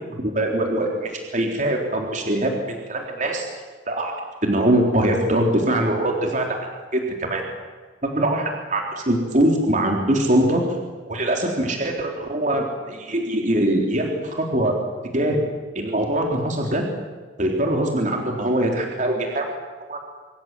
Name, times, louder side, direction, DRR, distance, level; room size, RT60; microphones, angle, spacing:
voice 1, 0.2-3.5 3.9-4.1 4.4-6.6 6.9-7.4 8.0-10.6 11.1-14.7 15.1-15.4 15.8-16.8 17.4-19.5 19.9-20.0, right 1 dB, 45° right, 1 dB, 3.7 m, -22 dB
26.5 x 24.5 x 7.6 m, 1.4 s
head